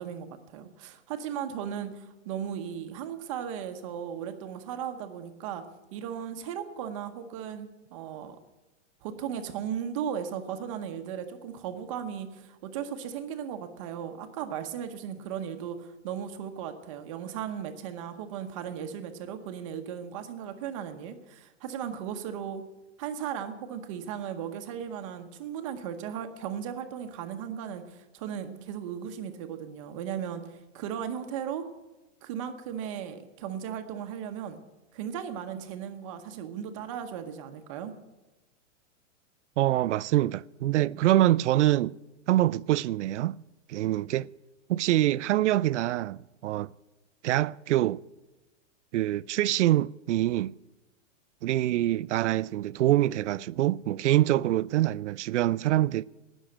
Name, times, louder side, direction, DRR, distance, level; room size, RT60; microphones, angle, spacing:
voice 1, 0.0-5.7 5.9-8.4 9.0-22.6 23.0-31.6 32.2-34.6 34.9-37.9, right 8 dB, 25° right, 0.8 m, -36 dB
voice 2, 39.6-41.9 42.3-43.3 43.7-44.3 44.7-46.7 47.2-48.0 48.9-50.5 51.4-56.0, right 14 dB, 70° right, 0.5 m, -25 dB
19.0 x 6.3 x 7.8 m
hypercardioid pair, 170°, 37 cm